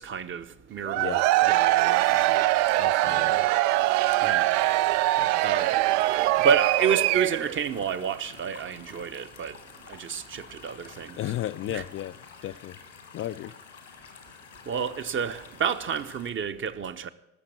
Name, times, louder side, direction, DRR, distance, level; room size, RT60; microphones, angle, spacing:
voice 1, 0.0-3.3 4.2-5.0 5.4-6.0 6.4-9.6 9.9-11.2 11.7-11.8 14.7-17.1, right 7 dB, 35° right, 1.0 m, -30 dB
Cheering / Crowd, 0.8-7.6, right 17 dB, 50° right, 0.4 m, -23 dB
sound 1, 2.0-16.3, left 5 dB, 85° left, 1.9 m, -49 dB
voice 2, 2.8-3.5 5.2-5.3 11.2-12.2 12.4-12.8 13.1-13.5, left 13 dB, 35° left, 0.4 m, -34 dB
19.0 x 6.7 x 7.4 m
figure-of-eight pair, 55°, 36 cm